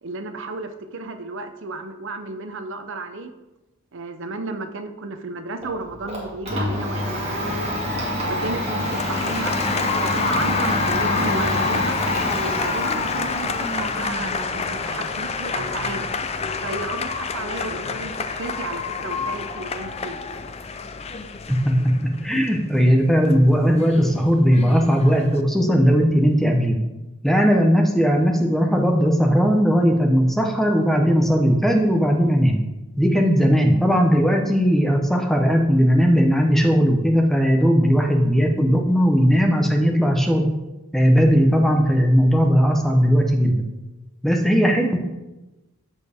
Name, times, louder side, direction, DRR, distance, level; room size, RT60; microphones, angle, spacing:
voice 1, 0.0-3.3 3.9-7.8 8.3-12.0 12.5-16.1 16.6-20.2, right 3 dB, 55° right, 8 dB, 0.6 m, -33 dB
Domestic sounds home sounds, 5.6-21.5, left 1 dB, 30° right, 1.9 m, -28 dB
Applause, 8.3-25.4, left 5 dB, 30° left, 0.4 m, -29 dB
voice 2, 21.5-26.8 27.2-32.6 33.0-40.5 40.9-43.7 44.2-45.0, equal, ahead, 2 dB, 0.8 m, -18 dB
13.5 x 4.5 x 3.5 m, 1.0 s
head